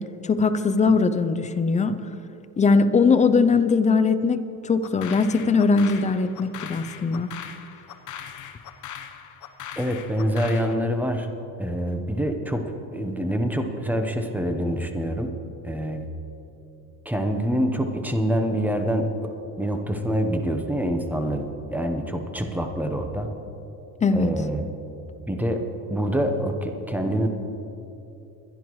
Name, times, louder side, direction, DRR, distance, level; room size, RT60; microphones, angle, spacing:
voice 1, 0.0-2.0 2.6-7.3 24.0-24.3, left 4 dB, 20° left, 11 dB, 0.4 m, -20 dB
sound 1, 4.8-10.8, left 9 dB, 50° left, 0.9 m, -40 dB
voice 2, 9.8-11.3 11.6-12.6 12.9-15.3 15.6-16.1 17.0-19.3 19.6-23.3 24.1-24.7 25.3-25.6 25.9-27.3, equal, 5° right, 5 dB, 0.9 m, -26 dB
23.0 x 10.5 x 3.1 m, 2.9 s
cardioid pair, 125°, 40 cm